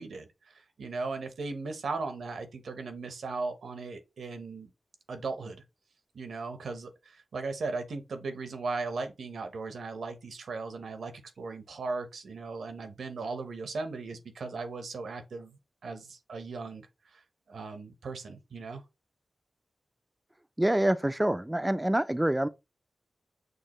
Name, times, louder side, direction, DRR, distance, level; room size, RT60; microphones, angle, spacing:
voice 1, 0.0-4.7 5.1-5.6 6.1-17.2 17.5-18.8, right 3 dB, 85° right, 0.8 m, -37 dB
voice 2, 20.6-22.5, right 1 dB, 15° right, 0.3 m, -26 dB
6.4 x 2.4 x 3.0 m
cardioid pair, 60°, 0 cm